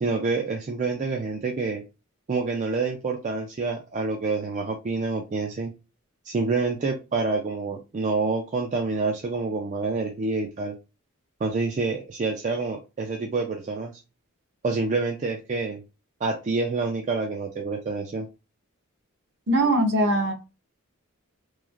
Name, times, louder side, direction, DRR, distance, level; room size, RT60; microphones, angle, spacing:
voice 1, 0.0-1.8 2.3-5.7 6.2-10.8 11.4-14.0 14.6-15.8 16.2-18.3, right 3 dB, 35° right, 0.3 m, -27 dB
voice 2, 19.5-20.3, right 1 dB, 50° right, 0.8 m, -21 dB
3.1 x 2.4 x 2.4 m
head